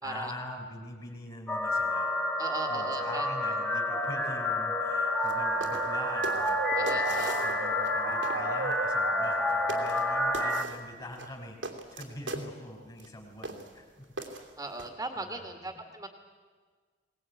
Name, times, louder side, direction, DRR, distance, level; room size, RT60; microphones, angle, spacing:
voice 1, 0.0-2.1 2.7-11.6 11.9-14.1 15.2-15.8, left 1 dB, 25° left, 3 dB, 3.7 m, -44 dB
sound 1, 1.5-10.6, left 1 dB, 5° left, 1.8 m, -29 dB
voice 2, 2.4-3.3 6.7-7.4 14.6-16.1, right 2 dB, 15° right, 3 dB, 2.0 m, -38 dB
Motor vehicle (road) / Siren, 4.8-10.6, right 4 dB, 65° right, 1.0 m, -38 dB
sound 2, 5.2-5.3 5.6-5.9 6.2-7.9 8.2-8.4 9.2-9.4 9.7-10.0 10.3-10.8 11.1-12.5 13.0-13.1 13.4-13.7 14.2-14.9, right 2 dB, 85° right, 2.8 m, -39 dB
22.0 x 19.0 x 9.3 m, 1.5 s
head